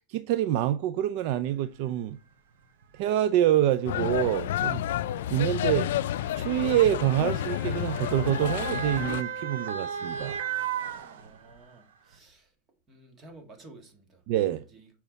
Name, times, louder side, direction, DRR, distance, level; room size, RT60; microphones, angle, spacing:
voice 1, 0.1-2.2 2.9-4.8 5.3-5.9 6.4-10.4 14.3-14.6, right 12 dB, 55° right, 0.4 m, -26 dB
Motor vehicle (road) / Siren, 1.8-1.9 2.8-3.0 4.1-11.7 12.1-12.2, right 8 dB, 85° right, 0.9 m, -37 dB
sound 1, 3.9-9.2, left 12 dB, 85° left, 0.3 m, -30 dB
voice 2, 11.1-12.5 12.9-14.2 14.6-14.9, right 2 dB, 25° right, 1.6 m, -52 dB
7.3 x 4.5 x 4.0 m
supercardioid pair, 145°, 0 cm